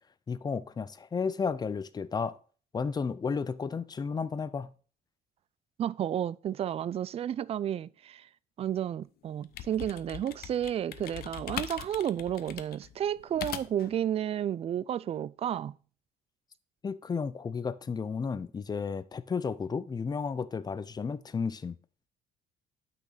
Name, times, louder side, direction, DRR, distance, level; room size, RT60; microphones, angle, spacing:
voice 1, 0.3-2.4 2.7-4.7 16.8-21.8, left 5 dB, 25° left, 0.6 m, -33 dB
voice 2, 5.8-8.3 8.6-15.8, right 10 dB, 35° right, 0.3 m, -32 dB
sound 1, 9.3-13.9, left 11 dB, 65° left, 0.7 m, -41 dB
9.1 x 6.0 x 4.0 m
cardioid pair, 110°, 17 cm